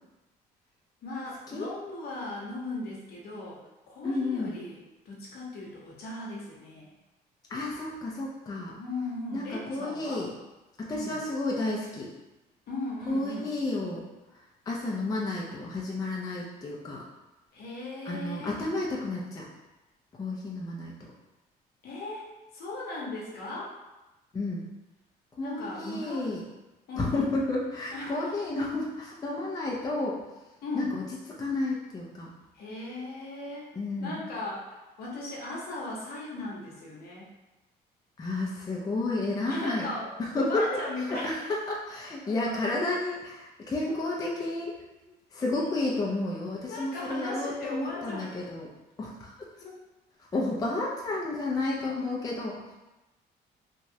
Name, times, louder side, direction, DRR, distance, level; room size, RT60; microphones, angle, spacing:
voice 1, 1.0-3.6 3.9-6.9 8.8-10.2 10.9-11.2 12.7-13.5 17.5-18.6 21.8-23.7 25.4-26.4 26.9-27.3 27.9-28.3 30.6-31.0 32.5-33.7 34.0-37.3 39.5-41.4 42.5-42.6 46.7-48.4 49.5-49.8, left 2 dB, 65° left, -3 dB, 0.9 m, -37 dB
voice 2, 4.0-4.5 7.5-8.8 9.3-10.3 10.8-12.1 13.1-14.0 14.7-17.0 18.1-19.5 20.2-20.9 24.3-24.6 25.4-26.4 27.0-30.2 30.7-31.0 31.4-32.3 33.8-34.2 38.2-39.9 40.2-40.8 41.1-44.8 45.3-48.7 49.0-49.5 50.3-52.6, left 2 dB, 20° left, -4 dB, 0.5 m, -31 dB
3.0 x 2.3 x 2.7 m, 1.0 s
cardioid pair, 110°, 17 cm